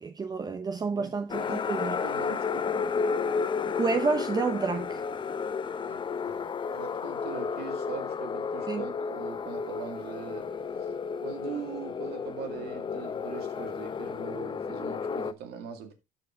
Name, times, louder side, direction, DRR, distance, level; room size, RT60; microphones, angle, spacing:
voice 1, 0.0-2.0 3.8-5.0 8.7-8.8, right 4 dB, 25° right, 0.7 m, -29 dB
voice 2, 0.9-2.9 5.9-10.5 10.8-10.9 11.2-15.9, right 7 dB, 75° right, 2.3 m, -42 dB
sound 1, 1.3-15.3, left 5 dB, 30° left, 0.7 m, -32 dB
13.5 x 4.8 x 3.7 m
cardioid pair, 120°, 17 cm